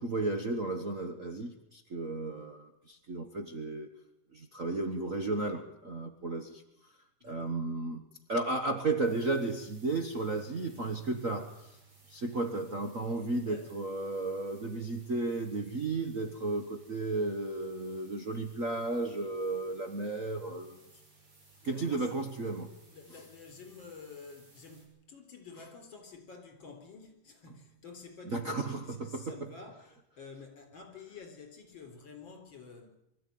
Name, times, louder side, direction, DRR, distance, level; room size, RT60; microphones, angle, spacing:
voice 1, 0.0-3.9 4.3-6.6 7.2-11.8 12.1-20.8 21.6-22.7 28.2-29.4, right 2 dB, 80° right, 6 dB, 0.7 m, -34 dB
voice 2, 7.2-7.6 13.4-13.7 21.6-22.2 22.9-29.9 30.2-32.9, left 4 dB, 35° left, 4 dB, 4.6 m, -50 dB
sound 1, 9.0-24.8, right 4 dB, 40° right, 7.1 m, -60 dB
24.0 x 14.0 x 9.4 m, 0.86 s
omnidirectional pair, 3.7 m